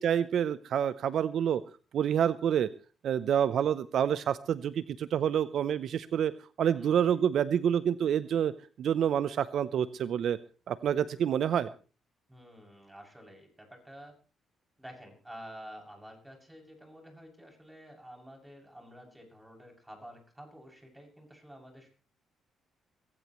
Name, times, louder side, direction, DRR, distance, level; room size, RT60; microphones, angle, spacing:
voice 1, 0.0-1.6 1.9-2.7 3.0-6.3 6.6-8.5 8.8-10.4 10.7-11.7, right 9 dB, 65° right, 15 dB, 0.6 m, -27 dB
voice 2, 6.7-7.1 12.3-14.1 14.8-21.9, equal, 10° right, 2 dB, 6.9 m, -50 dB
22.0 x 16.5 x 3.1 m, 0.37 s
cardioid pair, 90°, 0 cm